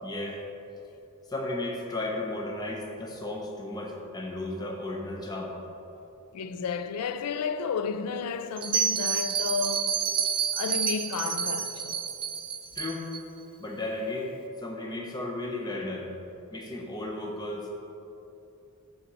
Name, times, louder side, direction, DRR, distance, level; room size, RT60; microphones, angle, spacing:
voice 1, 0.0-0.4 1.3-5.5 12.7-13.1 13.6-16.1 16.5-17.7, left 2 dB, 20° left, 0.7 m, -34 dB
voice 2, 6.3-10.0 10.5-12.1, left 5 dB, 90° left, 0.4 m, -32 dB
Bell, 8.6-13.2, right 6 dB, 25° right, 0.3 m, -29 dB
5.8 x 3.9 x 6.1 m
head